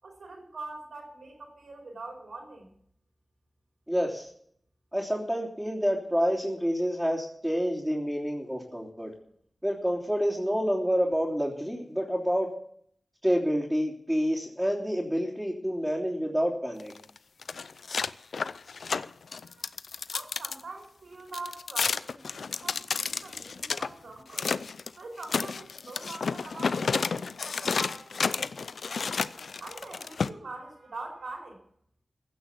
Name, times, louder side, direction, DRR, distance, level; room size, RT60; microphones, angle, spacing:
voice 1, 0.0-2.7 19.3-19.7 20.1-24.5 25.0-29.1 29.6-31.6, right 3 dB, 80° right, 1 dB, 4.7 m, -44 dB
voice 2, 3.9-4.3 4.9-9.1 9.6-12.5 13.2-16.9, equal, 5° right, -5 dB, 3.3 m, -28 dB
sound 1, 16.8-20.6 21.3-23.9 24.3-24.9 25.2-30.3, left 5 dB, 80° left, 0.4 m, -31 dB
16.0 x 6.2 x 8.5 m, 0.65 s
cardioid pair, 55°, 0 cm